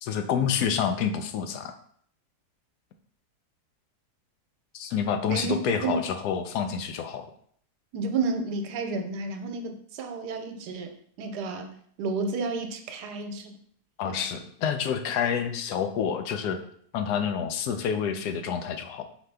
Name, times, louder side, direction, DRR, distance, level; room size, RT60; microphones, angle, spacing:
voice 1, 0.0-1.7 4.7-7.2 14.0-16.6 16.9-19.0, left 7 dB, 80° left, 7 dB, 1.1 m, -28 dB
voice 2, 7.9-13.6 14.0-14.3, right 4 dB, 85° right, 6 dB, 1.2 m, -31 dB
4.8 x 3.0 x 3.3 m, 0.62 s
omnidirectional pair, 1.7 m